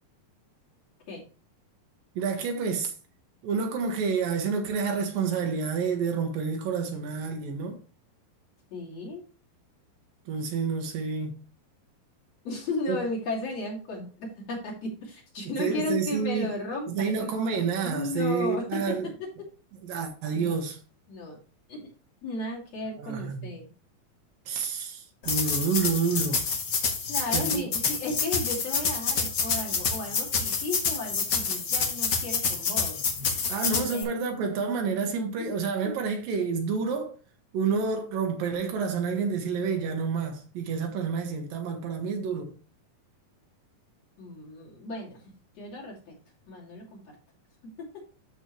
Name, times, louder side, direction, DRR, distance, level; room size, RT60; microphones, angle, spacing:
voice 1, 2.2-2.9 3.4-7.8 10.3-11.4 12.9-13.0 15.5-16.5 16.9-19.1 19.8-20.8 23.0-23.5 24.5-26.4 27.3-27.6 33.5-37.2 37.5-42.5, right 5 dB, 75° right, 2.9 m, -29 dB
voice 2, 8.7-9.2 12.5-17.3 17.8-19.0 20.3-20.6 21.1-21.4 21.7-21.9 22.2-23.6 27.1-33.0 33.9-34.1 35.4-35.5 35.8-36.0 44.2-45.2 45.6-46.1 46.5-47.0 47.8-48.1, left 2 dB, 45° left, 3.7 m, -34 dB
sound 1, 25.2-34.0, left 5 dB, 80° left, 0.9 m, -28 dB
13.0 x 4.4 x 3.1 m
omnidirectional pair, 4.1 m